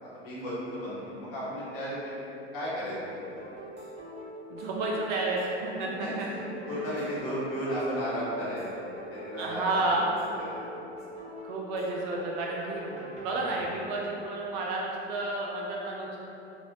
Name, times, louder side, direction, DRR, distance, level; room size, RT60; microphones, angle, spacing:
voice 1, 0.0-2.1 2.5-3.3 6.0-8.8 9.1-10.0 10.4-10.7, equal, 55° left, -9 dB, 1.2 m, -34 dB
sound 1, 3.2-13.7, equal, 20° right, 0.7 m, -44 dB
voice 2, 4.5-6.3 6.7-6.9 9.4-10.1 11.4-12.8 13.2-16.2, right 2 dB, 40° right, -2 dB, 0.4 m, -31 dB
3.0 x 2.4 x 2.7 m, 2.9 s
figure-of-eight pair, 75°, 34 cm